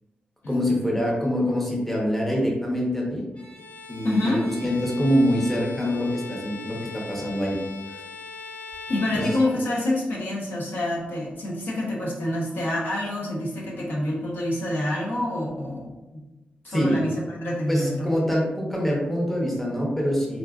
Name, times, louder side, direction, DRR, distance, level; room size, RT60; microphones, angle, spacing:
voice 1, 0.5-3.2 3.9-7.6 9.1-9.4 16.7-17.0 17.7-20.4, equal, 5° left, -3 dB, 0.8 m, -25 dB
Bowed string instrument, 3.4-10.1, left 4 dB, 40° left, 0.6 m, -40 dB
voice 2, 4.0-4.4 8.9-16.3 16.6-18.1, left 1 dB, 75° left, -4 dB, 0.9 m, -27 dB
3.7 x 2.3 x 2.4 m, 1.1 s
cardioid pair, 85°, 4 cm